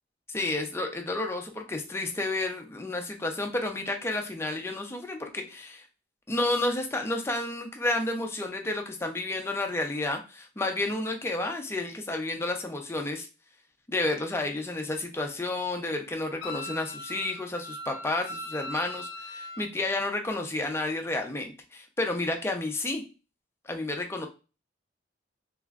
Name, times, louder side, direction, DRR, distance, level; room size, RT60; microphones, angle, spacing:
voice 1, 0.3-5.9 6.3-13.3 13.9-23.0 23.6-24.3, left 2 dB, 15° left, 3 dB, 0.5 m, -31 dB
Wind instrument woodwind instrument, 16.4-19.6, left 1 dB, 65° left, 0.5 m, -39 dB
3.3 x 3.0 x 2.4 m, 0.32 s
head